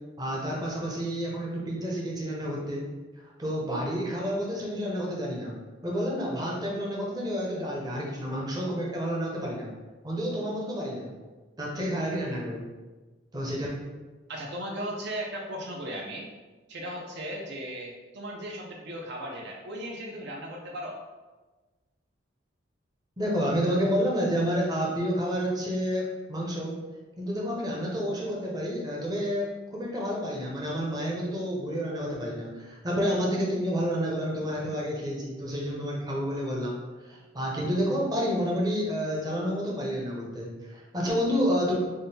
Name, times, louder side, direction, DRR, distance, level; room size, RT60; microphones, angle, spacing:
voice 1, 0.2-2.8 3.4-5.6 5.8-9.7 10.0-11.1 11.6-12.6 13.3-13.7 23.2-26.8 27.2-41.7, equal, 20° right, -3 dB, 0.7 m, -29 dB
voice 2, 14.3-16.3 16.7-21.0, right 1 dB, 65° right, -1 dB, 0.6 m, -36 dB
3.6 x 2.2 x 4.1 m, 1.3 s
head